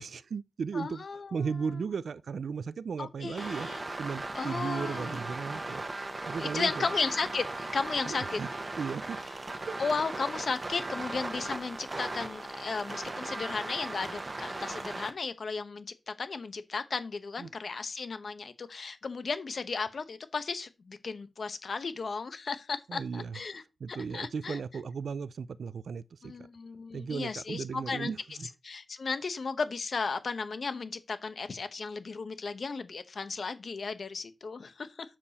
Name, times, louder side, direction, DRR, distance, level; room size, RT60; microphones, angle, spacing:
voice 1, 0.0-1.0 1.3-3.7 4.0-5.8 6.3-6.9 8.1-8.5 8.8-9.2 9.7-9.8 17.4-17.5 22.9-23.4 23.8-26.5 26.9-28.5, right 5 dB, 90° right, 0.4 m, -36 dB
voice 2, 0.7-1.7 3.0-3.8 4.3-5.2 6.4-8.4 9.8-23.6 23.9-24.6 26.2-28.1 28.6-35.2, left 4 dB, 55° left, 1.0 m, -35 dB
sound 1, 3.4-15.1, right 2 dB, 30° right, 1.0 m, -38 dB
7.4 x 6.7 x 4.1 m
wide cardioid pair, 165°, 0 cm